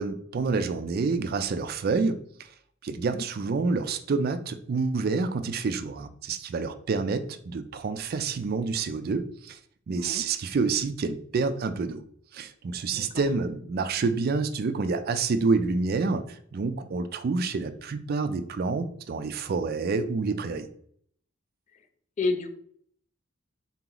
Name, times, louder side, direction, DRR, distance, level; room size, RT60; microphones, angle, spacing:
voice 1, 0.0-2.2 2.8-9.6 9.9-12.0 12.3-20.7, right 4 dB, 50° right, 10 dB, 0.4 m, -28 dB
voice 2, 12.9-13.2 22.2-22.6, left 3 dB, 35° left, 8 dB, 0.3 m, -31 dB
4.0 x 2.9 x 3.8 m, 0.62 s
head